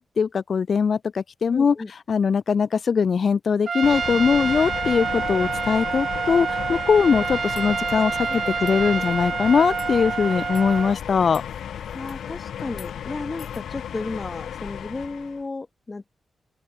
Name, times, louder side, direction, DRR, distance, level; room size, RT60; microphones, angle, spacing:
voice 1, 0.0-1.8 2.1-11.4, left 6 dB, 55° left, 0.5 m, -21 dB
voice 2, 1.5-1.9 8.3-8.4 9.0-9.1 11.9-16.1, left 3 dB, 25° left, 4.7 m, -34 dB
Trumpet, 3.7-11.0, right 6 dB, 50° right, 1.4 m, -27 dB
sound 1, 3.8-15.4, left 9 dB, 85° left, 1.3 m, -34 dB
sound 2, 7.2-12.3 12.7-12.9 13.4-13.6, left 7 dB, 70° left, 7.6 m, -51 dB
open air
wide cardioid pair, 115°, 0 cm